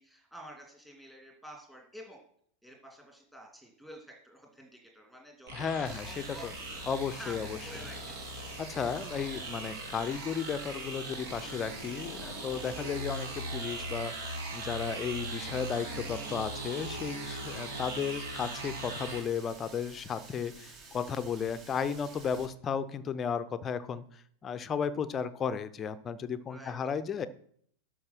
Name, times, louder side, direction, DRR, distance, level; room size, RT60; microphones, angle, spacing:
voice 1, 0.0-2.2 2.6-6.5 7.2-8.3 26.5-26.8, equal, 5° right, 1 dB, 2.7 m, -50 dB
voice 2, 5.5-6.1 6.4-6.5 6.9-7.6 8.6-27.3, left 7 dB, 25° left, 13 dB, 0.7 m, -34 dB
sound 1, 5.5-19.2, right 2 dB, 55° right, 2.6 m, -40 dB
Water tap faucet, 5.9-22.5, right 3 dB, 30° right, 1.9 m, -52 dB
12.0 x 4.9 x 6.0 m, 0.64 s
figure-of-eight pair, 90°, 0 cm